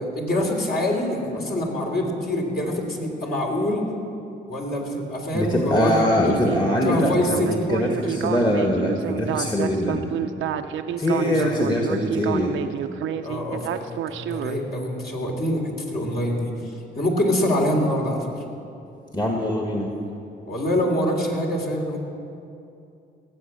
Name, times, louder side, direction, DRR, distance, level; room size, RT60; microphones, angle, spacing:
voice 1, 0.0-3.8 4.5-6.3 6.8-7.6 8.0-8.1 11.1-11.6 13.2-16.5 17.0-18.2 20.4-22.0, left 1 dB, 50° left, -1 dB, 3.3 m, -25 dB
voice 2, 5.3-10.1 11.0-12.6 19.1-19.9, left 1 dB, 20° left, 1 dB, 1.8 m, -23 dB
Speech synthesizer, 6.2-14.6, right 10 dB, 75° right, 0.7 m, -29 dB
18.0 x 7.9 x 7.4 m, 2.6 s
supercardioid pair, 70°, 21 cm